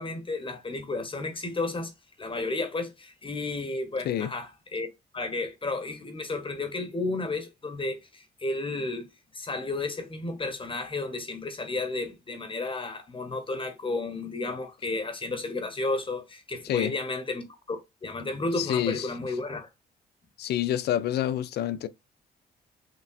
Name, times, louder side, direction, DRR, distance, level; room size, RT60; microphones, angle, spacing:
voice 1, 0.0-1.9 2.2-4.9 5.1-9.1 9.3-19.7, left 2 dB, 30° left, 1.0 m, -32 dB
voice 2, 18.6-19.1 20.4-21.9, left 11 dB, 70° left, 0.4 m, -28 dB
5.9 x 2.3 x 2.4 m
cardioid pair, 70°, 18 cm